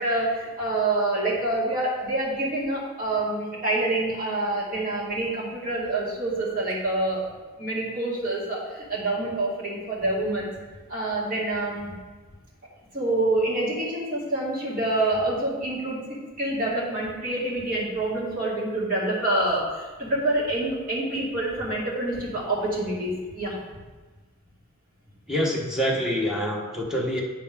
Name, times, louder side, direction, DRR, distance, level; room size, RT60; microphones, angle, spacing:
voice 1, 0.0-7.3 7.6-10.5 10.9-11.9 12.9-23.6, right 2 dB, 40° right, -6 dB, 2.4 m, -27 dB
voice 2, 25.3-27.2, equal, 5° right, -3 dB, 1.2 m, -26 dB
8.7 x 6.6 x 3.6 m, 1.3 s
head